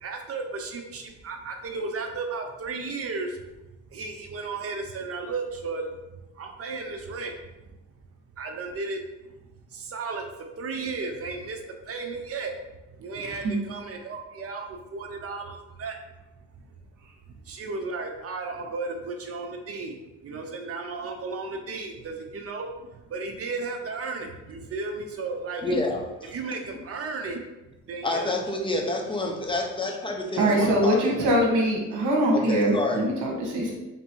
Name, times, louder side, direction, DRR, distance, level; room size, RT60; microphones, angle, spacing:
voice 1, 0.0-3.4 3.9-5.9 6.3-7.4 7.6-7.7 8.4-9.0 9.3-9.4 9.7-10.3 10.6-12.6 12.9-16.0 16.7-16.8 17.4-25.8 26.2-27.4 27.9-28.3, right 3 dB, 50° right, 4 dB, 0.7 m, -34 dB
voice 2, 13.2-13.5 30.4-33.7, right 1 dB, 80° right, -1 dB, 1.2 m, -23 dB
voice 3, 25.6-26.3 28.0-31.3 32.3-33.0, left 2 dB, 15° left, 1 dB, 0.8 m, -28 dB
3.4 x 2.9 x 4.5 m, 1.0 s
cardioid pair, 90°, 30 cm